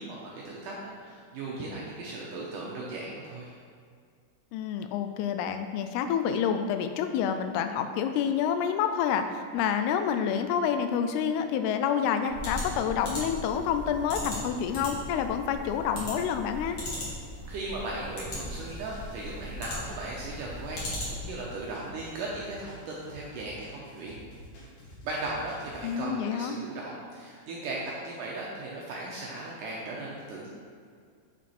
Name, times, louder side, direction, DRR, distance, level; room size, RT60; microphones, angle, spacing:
voice 1, 0.0-3.5 17.5-24.2 25.0-30.5, right 2 dB, 75° right, -4 dB, 2.0 m, -37 dB
voice 2, 4.5-16.8 25.8-26.6, left 8 dB, 85° left, 8 dB, 2.5 m, -28 dB
sound 1, 12.3-21.4, left 1 dB, 40° left, 2.1 m, -38 dB
sound 2, 18.5-26.0, equal, 65° left, 3.6 m, -49 dB
7.2 x 5.8 x 4.3 m, 2.1 s
omnidirectional pair, 4.6 m